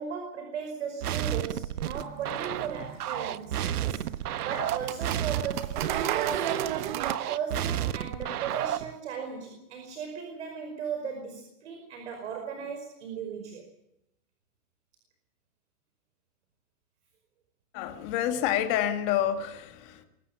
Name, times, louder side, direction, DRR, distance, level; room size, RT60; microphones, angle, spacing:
voice 1, 0.0-6.9 7.3-13.6, right 6 dB, 50° right, 5.2 m, -37 dB
sound 1, 1.0-9.0, right 11 dB, 85° right, 1.3 m, -32 dB
sound 2, 1.9-7.2, right 11 dB, 30° right, 1.3 m, -34 dB
voice 2, 17.7-20.1, left 11 dB, 25° left, 1.9 m, -28 dB
24.0 x 14.0 x 9.8 m
supercardioid pair, 175°, 44 cm